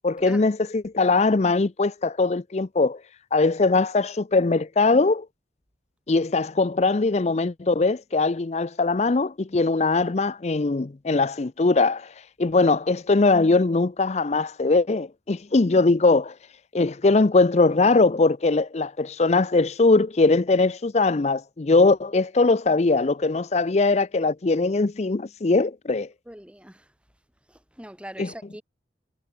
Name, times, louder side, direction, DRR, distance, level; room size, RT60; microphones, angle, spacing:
voice 1, 0.0-3.0 3.3-5.3 6.1-12.1 12.4-16.3 16.7-26.1 28.2-28.3, left 3 dB, 35° left, 0.5 m, -21 dB
voice 2, 26.3-26.9 27.5-28.6, equal, 5° right, 5.0 m, -42 dB
head